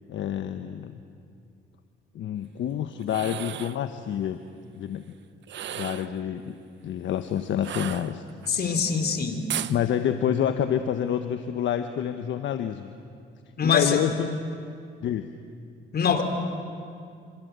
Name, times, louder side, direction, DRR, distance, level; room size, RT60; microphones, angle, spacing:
voice 1, 0.1-0.9 2.1-4.4 4.8-5.0 5.7-6.5 6.8-8.2 9.7-12.9 13.6-14.4 15.0-15.3, left 9 dB, 70° left, 8 dB, 1.2 m, -28 dB
sound 1, 3.0-3.8 5.4-6.2 7.6-8.5 9.5-9.8, right 11 dB, 65° right, 1.0 m, -35 dB
voice 2, 8.5-9.4 13.6-14.0 15.9-16.2, left 6 dB, 50° left, 6 dB, 3.6 m, -23 dB
27.0 x 26.5 x 8.2 m, 2.4 s
cardioid pair, 90°, 20 cm